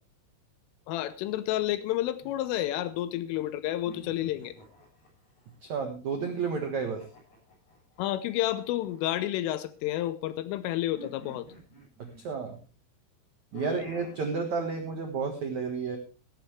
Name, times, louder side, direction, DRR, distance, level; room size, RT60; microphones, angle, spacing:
voice 1, 0.9-4.6 8.0-11.5 13.5-13.8, left 14 dB, 80° left, 13 dB, 3.2 m, -30 dB
sound 1, 2.2-3.3 3.8-5.6 6.2-9.9 10.9-12.7 13.5-14.3, right 2 dB, 35° left, 8.8 m, -52 dB
voice 2, 5.6-7.0 12.0-12.6 13.5-16.0, right 5 dB, 80° right, 5 dB, 1.6 m, -31 dB
15.5 x 14.5 x 3.3 m, 0.33 s
omnidirectional pair, 5.9 m